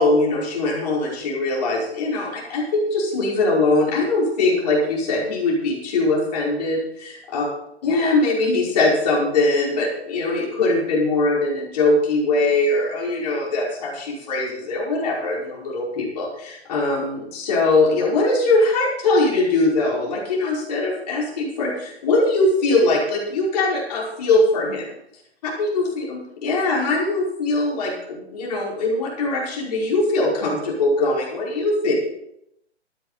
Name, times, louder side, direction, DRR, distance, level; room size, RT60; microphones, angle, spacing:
voice 1, 0.0-7.5 7.8-24.9 25.6-31.9, left 2 dB, 35° left, -4 dB, 5.3 m, -21 dB
13.5 x 12.5 x 4.3 m, 0.79 s
figure-of-eight pair, 130°, 34 cm